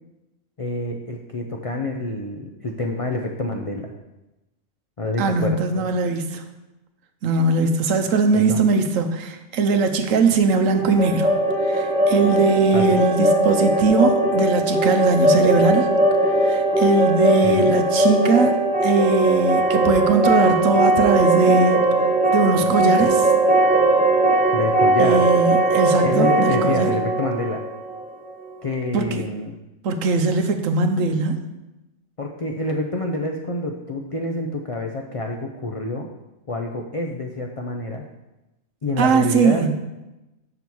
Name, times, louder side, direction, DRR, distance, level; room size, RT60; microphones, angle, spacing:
voice 1, 0.6-3.9 5.0-5.9 8.3-8.7 12.7-13.1 17.4-17.8 24.5-25.3 26.0-27.6 28.6-29.6 32.2-36.1 36.5-38.0 38.8-39.8, left 2 dB, 55° left, 2 dB, 0.3 m, -27 dB
voice 2, 5.2-6.4 7.2-11.3 11.7-15.9 16.4-18.6 18.8-21.9 22.3-23.3 25.0-26.9 28.9-29.2 29.8-31.4 39.0-39.8, right 4 dB, 70° right, 6 dB, 1.1 m, -20 dB
sound 1, 10.7-28.5, right 2 dB, 10° right, 0.5 m, -19 dB
6.9 x 6.0 x 4.6 m, 1.0 s
omnidirectional pair, 1.4 m